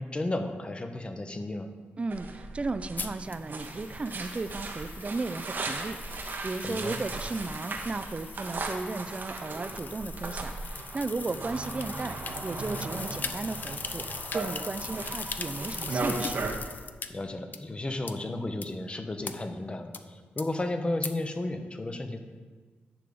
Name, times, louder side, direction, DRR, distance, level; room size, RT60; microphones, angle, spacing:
voice 1, 0.0-1.7 6.6-7.0 17.1-22.2, left 2 dB, 25° left, 7 dB, 0.9 m, -33 dB
voice 2, 2.0-16.4, right 3 dB, 30° right, 13 dB, 0.4 m, -35 dB
sound 1, 2.1-16.6, right 3 dB, 50° right, 0.9 m, -37 dB
sound 2, 3.0-17.1 17.5-17.6 18.1-18.2 18.6-18.7 19.2-19.3 19.9-20.0 20.4-20.5 21.0-21.1, left 5 dB, 45° left, 0.5 m, -40 dB
10.5 x 3.5 x 6.9 m, 1.4 s
cardioid pair, 75°, 4 cm